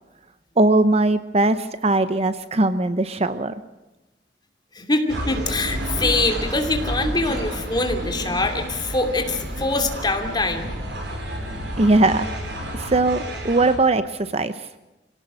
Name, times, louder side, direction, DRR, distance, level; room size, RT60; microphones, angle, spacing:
voice 1, 0.6-3.5 11.8-12.3 12.7-14.5, right 2 dB, 35° right, 12 dB, 0.8 m, -20 dB
voice 2, 4.7-10.7, left 2 dB, 25° left, 5 dB, 2.7 m, -24 dB
sound 1, 5.1-13.8, right 1 dB, 70° right, 5.7 m, -30 dB
25.5 x 17.5 x 6.4 m, 1.0 s
head